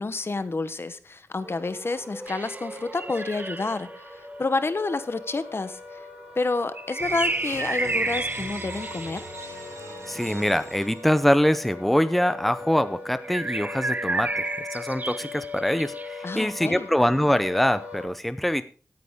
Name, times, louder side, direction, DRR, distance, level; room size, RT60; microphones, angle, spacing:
voice 1, 0.0-6.0 6.4-9.3 16.2-16.9, left 3 dB, 55° left, 13 dB, 0.9 m, -29 dB
sound 1, 1.4-18.1, left 3 dB, 15° right, 6.0 m, -41 dB
sound 2, 2.3-3.9 6.7-9.5 13.2-16.2, right 2 dB, 35° right, 0.5 m, -31 dB
sound 3, 7.0-11.6, right 2 dB, 80° right, 5.1 m, -41 dB
voice 2, 10.0-18.6, equal, 5° left, 12 dB, 0.6 m, -24 dB
16.5 x 9.6 x 3.6 m, 0.37 s
wide cardioid pair, 90°, 5 cm